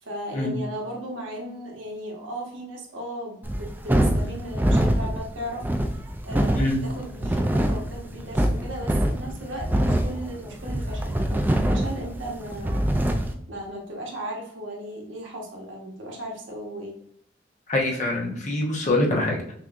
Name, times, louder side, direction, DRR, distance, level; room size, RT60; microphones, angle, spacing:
voice 1, 0.0-5.6 6.2-17.0, right 1 dB, 90° right, -1 dB, 1.2 m, -36 dB
sound 1, 3.4-13.3, right 1 dB, 10° right, 0.3 m, -24 dB
voice 2, 17.7-19.5, left 2 dB, 40° left, -1 dB, 0.9 m, -24 dB
5.9 x 2.7 x 2.5 m, 0.67 s
head